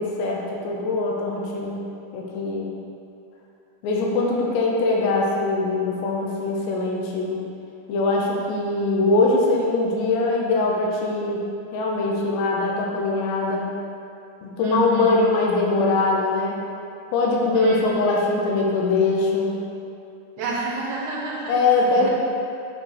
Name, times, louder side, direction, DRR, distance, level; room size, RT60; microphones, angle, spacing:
voice 1, 0.0-1.8 2.1-2.7 3.8-7.4 7.9-11.4 11.7-13.7 14.4-16.6 17.1-19.6 21.5-22.1, left 3 dB, 90° left, -2 dB, 3.1 m, -22 dB
voice 2, 14.6-15.2 17.5-18.1 20.4-21.6 21.9-22.1, right 4 dB, 80° right, -3 dB, 2.7 m, -29 dB
9.1 x 5.3 x 3.2 m, 2.7 s
omnidirectional pair, 4.9 m